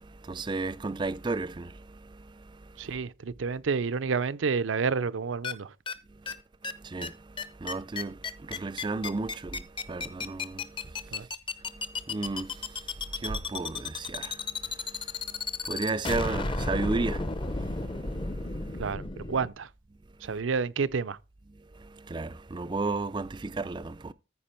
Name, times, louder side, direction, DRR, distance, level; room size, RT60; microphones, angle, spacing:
voice 1, 0.0-2.9 6.1-6.4 6.6-11.3 11.6-18.8 20.2-20.4 21.5-24.1, right 3 dB, 25° right, 0.4 m, -35 dB
voice 2, 2.8-5.7 11.1-11.3 18.8-19.7 20.2-21.2, right 5 dB, 75° right, 0.5 m, -29 dB
sound 1, 5.4-5.5 5.9-6.0 6.3-6.4 6.6-6.7 7.0-7.1 7.4-19.5, left 3 dB, 25° left, 0.7 m, -33 dB
14.0 x 5.1 x 4.4 m
head